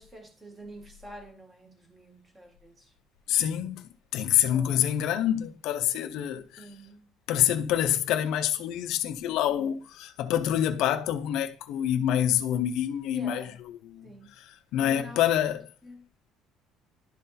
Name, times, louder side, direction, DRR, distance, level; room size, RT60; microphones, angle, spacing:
voice 1, 0.0-2.9 4.3-4.9 6.6-7.1 9.5-9.7 13.1-13.6 14.0-14.4 14.8-15.2 15.8-16.1, equal, 15° right, 1.9 m, -47 dB
voice 2, 3.3-6.6 7.3-13.5 13.8-14.0 14.4-15.6, left 11 dB, 65° left, 0.7 m, -27 dB
11.5 x 3.9 x 4.1 m
cardioid pair, 165°, 0 cm